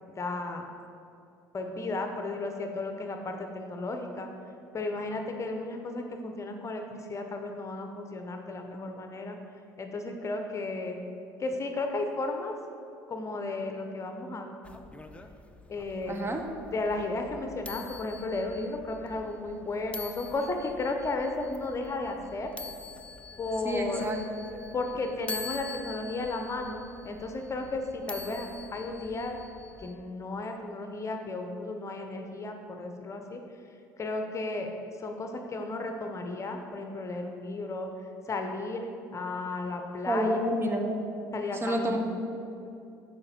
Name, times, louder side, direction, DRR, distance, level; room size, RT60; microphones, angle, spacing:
voice 1, 0.1-0.6 1.5-4.3 4.7-9.4 9.8-11.0 11.4-12.5 13.1-14.5 15.7-16.2 16.7-22.5 23.4-24.0 24.7-29.4 29.8-33.4 34.0-34.7 35.0-37.9 38.3-40.4 41.3-42.0, left 2 dB, 30° left, 4 dB, 0.9 m, -34 dB
sound 1, 14.6-29.9, left 3 dB, 10° left, 0.6 m, -45 dB
voice 2, 16.1-16.4 23.6-24.2 40.1-40.9 41.6-42.0, equal, 25° right, 3 dB, 1.0 m, -28 dB
7.0 x 5.1 x 6.6 m, 2.7 s
hypercardioid pair, 65°, 10 cm